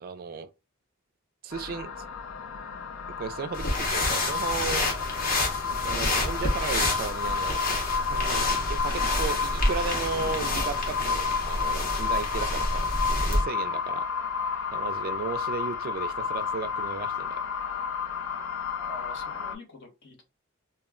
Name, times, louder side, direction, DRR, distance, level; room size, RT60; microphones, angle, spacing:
voice 1, 0.0-0.5 1.4-1.9 3.2-4.8 5.8-7.6 8.1-14.0 14.7-17.4, right 5 dB, 45° right, 0.3 m, -35 dB
sound 1, 1.5-19.5, left 5 dB, 85° left, 0.5 m, -31 dB
sound 2, 3.5-13.4, left 2 dB, 45° left, 0.8 m, -28 dB
voice 2, 12.3-12.8 18.8-20.2, left 3 dB, 60° left, 1.1 m, -45 dB
2.2 x 2.1 x 3.6 m
head